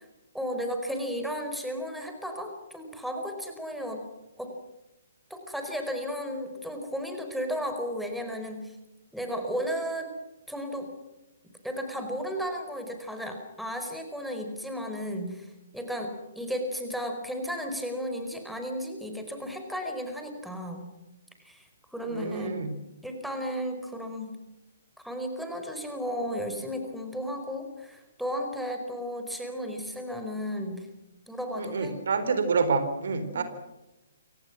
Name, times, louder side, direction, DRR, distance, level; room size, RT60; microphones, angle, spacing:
voice 1, 0.3-4.0 4.4-4.5 5.3-8.8 9.1-10.1 10.5-10.9 11.6-20.9 21.4-22.6 23.0-24.3 25.0-30.9 31.3-31.9 33.3-33.4, equal, ahead, 4 dB, 4.8 m, -34 dB
voice 2, 22.1-22.7 31.6-33.4, right 4 dB, 55° right, 10 dB, 4.1 m, -27 dB
30.0 x 25.5 x 6.2 m, 0.98 s
figure-of-eight pair, 130°, 0 cm